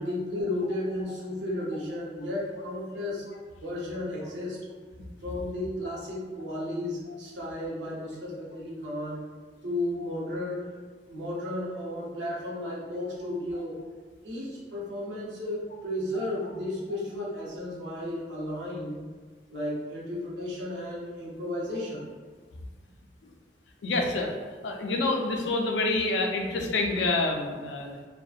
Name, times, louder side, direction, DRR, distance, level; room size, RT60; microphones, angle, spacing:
voice 1, 0.0-3.3 3.6-4.6 5.2-9.3 9.6-10.8 11.1-13.8 14.2-19.0 19.5-22.1, left 1 dB, 85° right, -5 dB, 0.7 m, -33 dB
voice 2, 23.8-24.3 24.6-28.0, left 2 dB, 80° left, 2 dB, 0.4 m, -28 dB
2.6 x 2.2 x 2.3 m, 1.5 s
head